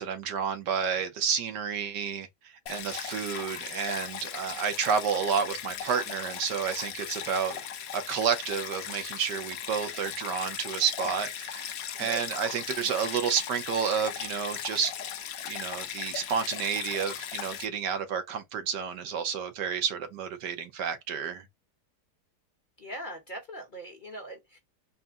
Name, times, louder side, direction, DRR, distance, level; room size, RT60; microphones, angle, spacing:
voice 1, 0.0-7.7 7.9-11.7 12.0-14.9 15.4-21.4, right 7 dB, 85° right, 1.5 m, -30 dB
Stream, 2.7-17.7, left 9 dB, 70° left, 1.0 m, -38 dB
voice 2, 22.8-24.6, right 1 dB, 35° left, 1.1 m, -40 dB
4.2 x 2.2 x 3.5 m
omnidirectional pair, 1.8 m